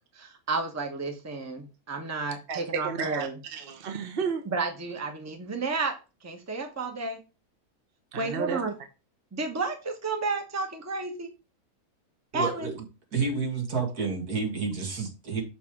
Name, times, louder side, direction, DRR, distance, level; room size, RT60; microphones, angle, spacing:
voice 1, 0.1-3.4 4.5-5.9 6.2-7.2 8.1-8.7 9.3-11.3 12.3-12.7, right 3 dB, 10° right, 1.0 m, -31 dB
voice 2, 2.5-4.4 8.1-8.6, right 6 dB, 40° right, 1.1 m, -32 dB
voice 3, 12.3-12.8 13.1-15.4, right 4 dB, 80° right, 2.5 m, -30 dB
7.0 x 3.4 x 6.0 m
omnidirectional pair, 1.6 m